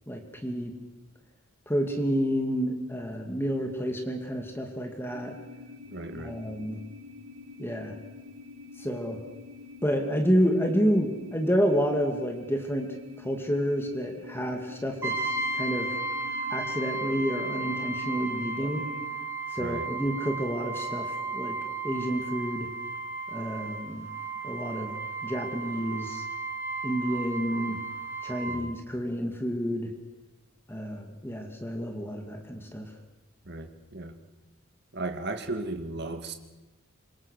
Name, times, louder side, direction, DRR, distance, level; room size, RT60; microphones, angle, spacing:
voice 1, 0.1-0.7 1.7-5.4 6.2-6.8 7.6-7.9 8.8-9.2 9.8-16.0 16.5-18.8 19.5-21.6 21.8-22.7 23.3-24.1 24.4-24.9 25.2-26.2 26.8-27.8 28.2-29.9 30.7-32.9, equal, 10° left, 3 dB, 2.4 m, -29 dB
sound 1, 5.1-19.1, left 3 dB, 85° right, 3.3 m, -47 dB
voice 2, 5.9-6.4 19.6-19.9 28.5-28.7 33.5-34.2 34.9-36.3, right 2 dB, 50° right, 7 dB, 2.1 m, -36 dB
Brass instrument, 15.0-28.6, right 3 dB, 15° right, 1.9 m, -34 dB
26.5 x 24.0 x 6.6 m, 1.1 s
head